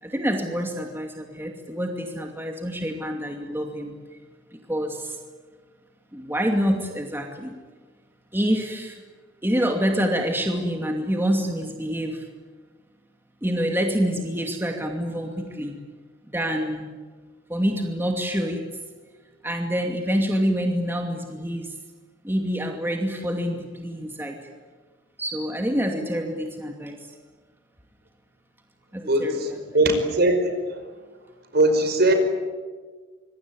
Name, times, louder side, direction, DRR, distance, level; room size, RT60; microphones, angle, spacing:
voice 1, 0.0-3.9 4.5-5.1 6.1-7.5 8.3-9.0 9.4-12.3 13.4-15.7 16.3-16.9 17.5-18.6 19.4-21.7 22.2-24.3 25.2-27.0 28.9-29.6, equal, 10° right, 2 dB, 2.5 m, -26 dB
voice 2, 29.1-30.8 31.5-32.1, right 1 dB, 55° right, 7 dB, 5.3 m, -21 dB
26.0 x 23.5 x 9.7 m, 1.5 s
head